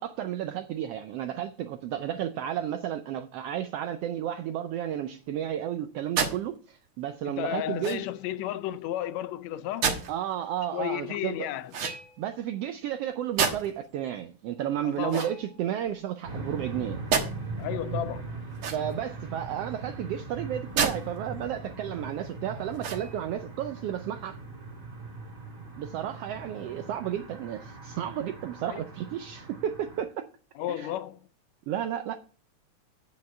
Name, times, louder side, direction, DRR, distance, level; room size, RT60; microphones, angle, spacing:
voice 1, 0.0-8.1 10.1-11.4 12.2-17.0 18.7-24.4 25.8-30.2 30.7-30.9 31.7-32.2, right 10 dB, 85° right, 1.3 m, -32 dB
sound 1, 6.2-6.4 7.8-8.2 9.8-10.1 11.7-12.3 13.4-13.9 15.0-15.9 17.1-17.3 18.5-19.1 20.7-21.0 21.5-21.6 22.7-23.3, right 6 dB, 55° right, 1.9 m, -29 dB
voice 2, 7.2-9.9 10.7-11.7 14.8-15.3 17.6-18.4 28.7-28.8 30.6-31.2, left 13 dB, 80° left, 1.7 m, -33 dB
sound 2, 16.2-30.1, right 3 dB, 30° right, 2.2 m, -40 dB
8.6 x 6.3 x 5.5 m
omnidirectional pair, 3.4 m